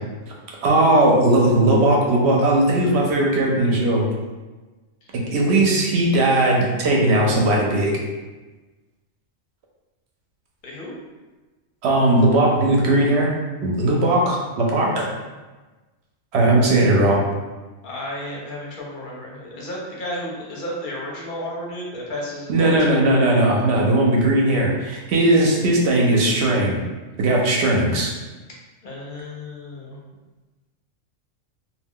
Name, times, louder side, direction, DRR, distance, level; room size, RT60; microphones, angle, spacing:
voice 1, 0.6-4.1 5.3-7.9 11.8-13.3 13.6-15.1 16.3-17.2 22.5-26.8 27.2-28.1, right 1 dB, 65° right, -2 dB, 0.8 m, -18 dB
voice 2, 10.6-10.9 17.8-23.1 28.8-30.0, left 1 dB, 50° left, -3 dB, 0.6 m, -32 dB
2.3 x 2.1 x 3.6 m, 1.2 s
omnidirectional pair, 1.4 m